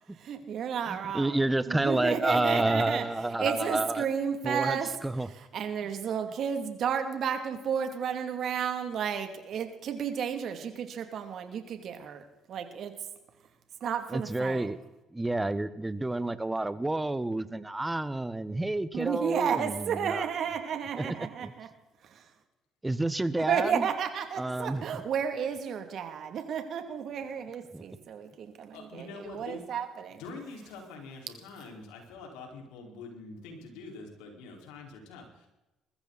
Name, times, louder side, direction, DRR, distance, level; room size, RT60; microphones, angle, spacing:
voice 1, 0.2-1.4 1.7-3.0 3.4-4.9 5.3-12.9 13.8-14.7 18.9-21.7 22.0-22.2 23.5-30.2, right 7 dB, 60° right, 7 dB, 2.6 m, -32 dB
voice 2, 0.9-4.1 4.4-5.3 14.1-14.8 15.1-20.3 20.9-21.5 22.8-23.9 24.4-25.0 27.7-27.8, right 2 dB, 10° right, 15 dB, 1.1 m, -30 dB
voice 3, 28.7-29.6 30.1-35.5, left 3 dB, 90° left, 1 dB, 4.6 m, -45 dB
21.0 x 14.5 x 4.1 m, 0.99 s
supercardioid pair, 85°, 0 cm